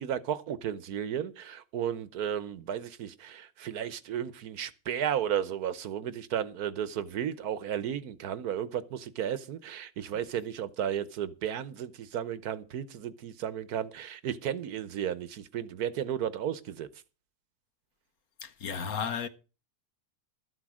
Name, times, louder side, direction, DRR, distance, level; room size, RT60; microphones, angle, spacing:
voice 1, 0.0-16.9, right 9 dB, 90° right, 1.4 m, -34 dB
voice 2, 18.4-19.3, left 6 dB, 75° left, 1.5 m, -33 dB
13.0 x 7.9 x 6.2 m
omnidirectional pair, 1.6 m